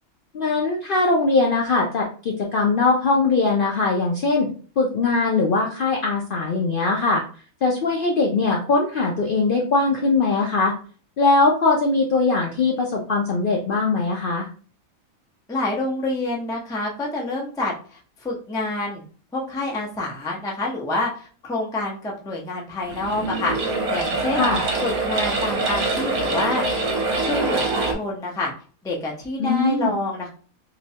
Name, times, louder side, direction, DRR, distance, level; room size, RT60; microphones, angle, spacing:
voice 1, 0.3-4.5 4.8-7.2 7.6-10.7 11.2-14.5 24.3-24.6 29.4-29.9, left 3 dB, 65° left, -1 dB, 0.5 m, -21 dB
voice 2, 15.5-19.0 19.3-24.5 24.8-26.6 27.2-28.5 28.8-30.3, left 2 dB, 5° left, -2 dB, 0.3 m, -27 dB
sound 1, 22.8-27.9, right 3 dB, 80° right, 1.3 m, -24 dB
3.1 x 2.9 x 2.7 m, 0.41 s
omnidirectional pair, 1.5 m